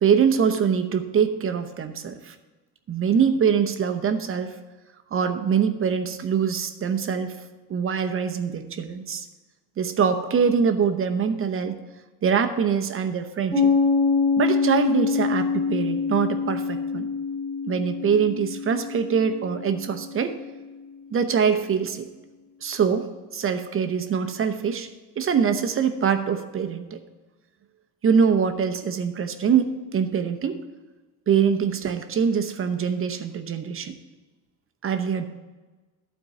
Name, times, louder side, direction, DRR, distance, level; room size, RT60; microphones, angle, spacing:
voice 1, 0.0-2.3 2.9-4.5 5.1-7.3 7.7-9.3 9.8-11.8 12.2-13.7 14.4-17.1 17.7-20.4 21.1-22.1 22.6-24.9 25.2-27.0 28.0-30.6 31.3-34.0 34.8-35.3, right 7 dB, 35° right, 8 dB, 0.8 m, -23 dB
Piano, 13.5-20.7, left 5 dB, 25° left, 2.5 m, -25 dB
12.0 x 4.5 x 7.5 m, 1.2 s
cardioid pair, 140°, 40 cm